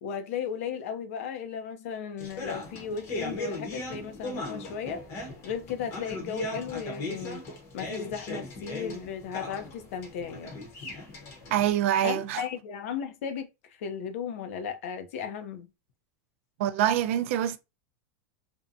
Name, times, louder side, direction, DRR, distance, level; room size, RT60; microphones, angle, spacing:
voice 1, 0.0-5.0 5.4-7.4 7.7-10.5 12.0-13.5 13.8-15.7, left 7 dB, 60° left, 0.5 m, -35 dB
sound 1, 2.2-11.7, left 2 dB, 30° left, 0.8 m, -38 dB
voice 2, 11.5-12.4 16.6-17.6, right 11 dB, 55° right, 0.3 m, -25 dB
2.6 x 2.1 x 2.5 m
supercardioid pair, 165°, 8 cm